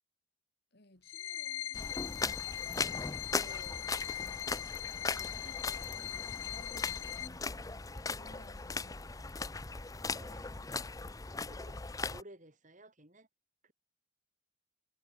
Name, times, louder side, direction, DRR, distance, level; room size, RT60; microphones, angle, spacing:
voice 1, 0.7-2.7 6.1-9.1, left 2 dB, 55° left, 2.3 m, -60 dB
sound 1, 0.9-6.6, right 2 dB, 70° right, 7.0 m, -75 dB
sound 2, 1.0-7.3, left 12 dB, 80° left, 0.9 m, -41 dB
sound 3, 1.7-12.2, left 4 dB, 15° left, 0.6 m, -39 dB
voice 2, 3.4-3.9 5.0-6.3 10.1-10.5 11.4-11.8 12.1-13.3 13.6-13.7, right 1 dB, 40° right, 5.2 m, -56 dB
head